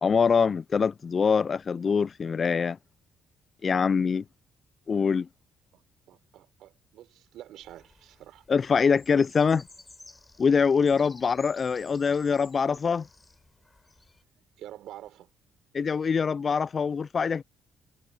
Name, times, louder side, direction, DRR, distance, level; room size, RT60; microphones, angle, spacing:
voice 1, 0.0-2.8 3.6-4.2 4.9-5.3 8.5-9.6 10.4-13.1 15.7-17.4, left 5 dB, 45° left, 0.3 m, -24 dB
voice 2, 6.1-8.4 14.6-15.3, right 13 dB, 80° right, 6.4 m, -47 dB
sound 1, 7.6-14.2, left 2 dB, 20° left, 4.8 m, -54 dB
supercardioid pair, 65°, 0 cm